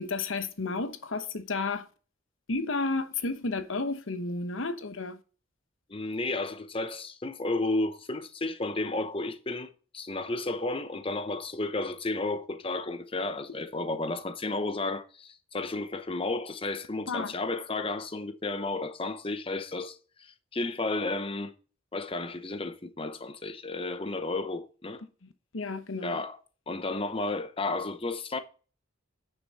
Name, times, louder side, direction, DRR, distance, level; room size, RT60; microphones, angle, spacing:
voice 1, 0.0-1.9 2.5-5.2 17.1-17.3 25.5-26.2, left 3 dB, 70° left, 1.0 m, -32 dB
voice 2, 5.9-9.7 9.9-21.5 21.9-25.0 26.0-26.4 26.7-28.4, left 2 dB, 25° left, 0.8 m, -32 dB
9.5 x 6.8 x 4.1 m
head